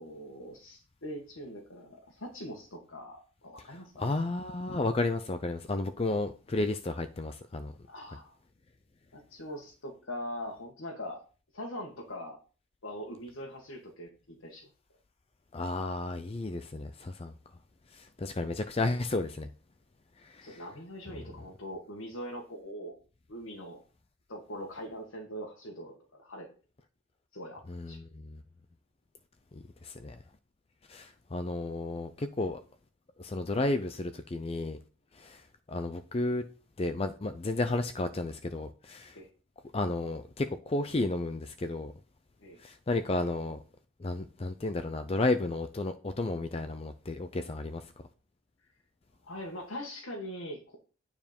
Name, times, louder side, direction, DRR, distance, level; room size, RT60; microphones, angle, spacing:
voice 1, 0.0-4.1 7.9-8.4 9.1-11.2 11.5-12.4 12.8-14.7 20.4-22.9 23.3-23.8 24.3-26.5 27.3-28.0 39.2-39.3 42.4-42.6 49.2-50.8, equal, 90° left, 1.8 m, -42 dB
voice 2, 3.6-7.7 15.5-17.3 17.9-19.5 20.2-20.6 21.1-21.2 27.7-28.4 29.5-30.2 30.9-32.6 33.2-34.8 35.1-36.4 36.8-39.2 39.7-41.9 42.6-43.6 44.0-47.8, left 2 dB, 30° left, 0.5 m, -33 dB
9.5 x 4.8 x 5.3 m
head